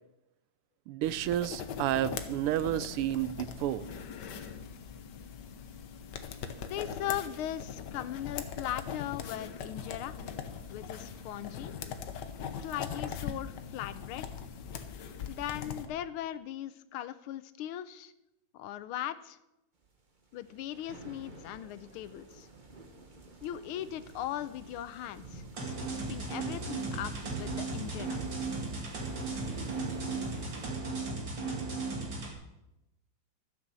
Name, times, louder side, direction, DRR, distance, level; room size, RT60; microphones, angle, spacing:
voice 1, 0.9-3.8, right 12 dB, 85° right, 16 dB, 1.5 m, -31 dB
sound 1, 1.0-15.9, left 7 dB, 60° left, 1.4 m, -41 dB
voice 2, 6.7-10.2 10.7-11.7 12.6-14.3 15.3-18.1 18.5-19.4 20.3-22.5 23.4-28.2, left 12 dB, 80° left, 14 dB, 1.5 m, -39 dB
sound 2, 20.3-30.7, right 3 dB, 30° right, 1.0 m, -47 dB
sound 3, 25.6-32.3, right 3 dB, 55° right, 3.1 m, -36 dB
12.5 x 6.9 x 7.4 m, 0.91 s
omnidirectional pair, 2.4 m